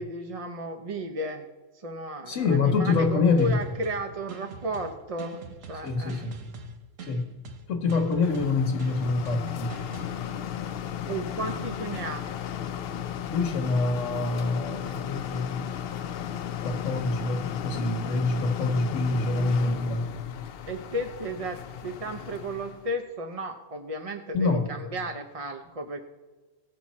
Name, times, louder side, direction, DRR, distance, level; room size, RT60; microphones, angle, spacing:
voice 1, 0.0-1.4 1.7-5.4 5.7-6.3 11.1-12.3 20.7-26.0, right 1 dB, 35° right, 5 dB, 0.6 m, -34 dB
voice 2, 2.3-3.5 5.8-6.4 7.1-7.3 7.7-9.8 13.3-15.7 16.6-20.1 24.3-24.7, left 3 dB, 90° left, 3 dB, 1.4 m, -26 dB
sound 1, 2.9-10.1, right 4 dB, 85° right, 1.3 m, -44 dB
sound 2, 8.2-22.9, left 9 dB, 60° left, 0.7 m, -35 dB
18.0 x 6.1 x 4.2 m, 1.2 s
omnidirectional pair, 1.3 m